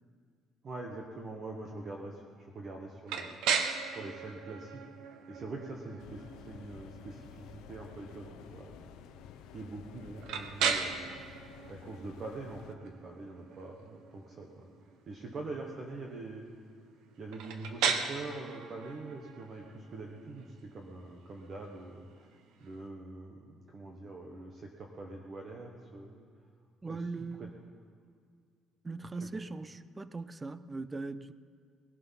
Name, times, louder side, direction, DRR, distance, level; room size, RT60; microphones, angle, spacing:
voice 1, 0.6-4.8 5.3-8.9 9.5-11.1 11.7-14.6 15.1-16.5 17.2-22.3 22.6-26.3 26.8-27.5 29.1-29.3, right 2 dB, 30° right, 1.2 m, -44 dB
sound 1, 3.1-22.8, right 6 dB, 80° right, 1.1 m, -38 dB
sound 2, 6.0-12.7, left 10 dB, 90° left, 0.6 m, -52 dB
voice 2, 26.8-27.6 28.8-31.3, right 3 dB, 15° right, 0.4 m, -40 dB
19.5 x 11.5 x 5.8 m
cardioid pair, 180°, 0 cm